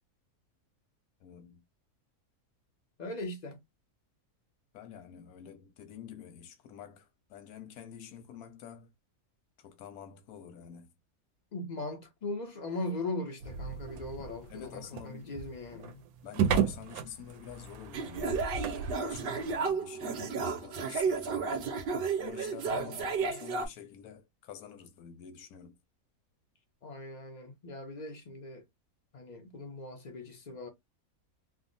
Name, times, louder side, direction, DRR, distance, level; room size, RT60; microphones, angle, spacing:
voice 1, 1.2-1.6 4.7-8.9 9.6-10.9 14.5-15.3 16.2-18.4 18.8-21.7 22.2-25.8, left 8 dB, 85° left, 1.2 m, -48 dB
voice 2, 3.0-3.6 11.5-16.0 22.7-23.4 26.8-28.6 29.1-30.7, left 2 dB, 50° left, 0.5 m, -40 dB
sound 1, 13.4-19.7, right 7 dB, 85° right, 1.1 m, -35 dB
sound 2, 17.9-23.7, right 5 dB, 60° right, 0.6 m, -33 dB
3.5 x 2.0 x 2.5 m
omnidirectional pair, 1.5 m